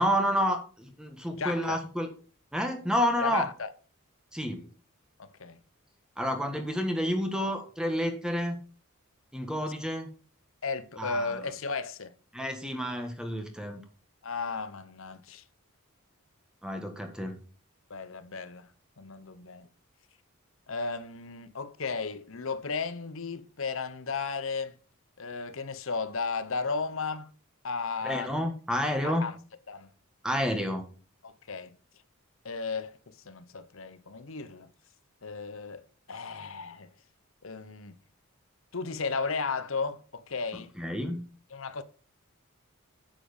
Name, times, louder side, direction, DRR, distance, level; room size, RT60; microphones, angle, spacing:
voice 1, 0.0-2.1 2.5-3.5 4.3-4.7 6.2-8.6 9.3-10.1 11.0-11.4 12.3-13.8 16.6-17.4 28.0-29.2 30.2-30.8 40.8-41.3, equal, 5° right, 1.5 m, -29 dB
voice 2, 1.3-1.8 3.2-3.7 5.2-5.6 10.6-12.1 14.2-15.4 17.9-18.7 19.0-19.7 20.7-24.8 25.2-27.3 27.6-28.3 29.0-29.4 29.7-29.9 31.2-31.8 32.4-34.7 35.2-35.8 36.1-36.9 37.4-38.0 38.7-40.7 41.5-41.8, left 4 dB, 65° left, 0.9 m, -34 dB
8.8 x 7.7 x 5.1 m
head